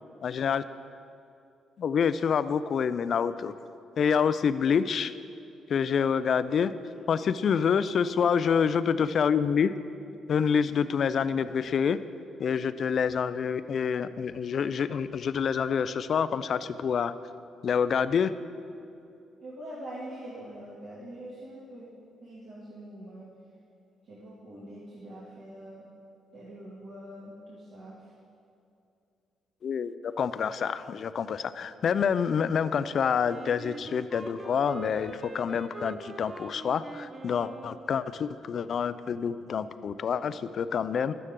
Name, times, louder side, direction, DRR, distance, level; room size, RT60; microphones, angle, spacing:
voice 1, 0.2-0.6 1.8-3.5 4.0-5.1 5.7-6.7 7.1-9.7 10.3-12.0 12.4-17.1 17.6-18.3 29.6-41.1, left 7 dB, 55° left, 14 dB, 0.4 m, -27 dB
voice 2, 19.4-21.9 22.2-23.3 24.0-25.9 26.3-28.1, right 1 dB, 60° right, -9 dB, 2.3 m, -44 dB
Wind instrument woodwind instrument, 33.3-38.3, right 3 dB, 30° right, 0.6 m, -44 dB
12.0 x 9.2 x 3.7 m, 2.6 s
cardioid pair, 90°, 0 cm